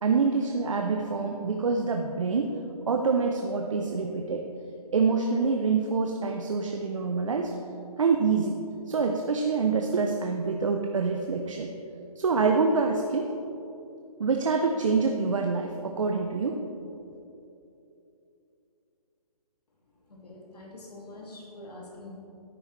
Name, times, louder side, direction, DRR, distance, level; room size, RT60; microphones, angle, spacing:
voice 1, 0.0-2.5 2.9-4.5 4.9-7.5 8.0-8.6 8.9-11.7 12.2-13.3 14.2-16.6, right 4 dB, 55° right, 3 dB, 0.6 m, -26 dB
voice 2, 20.1-22.2, left 2 dB, 90° left, -3 dB, 2.0 m, -45 dB
9.7 x 8.1 x 3.1 m, 2.8 s
hypercardioid pair, 175°, 20 cm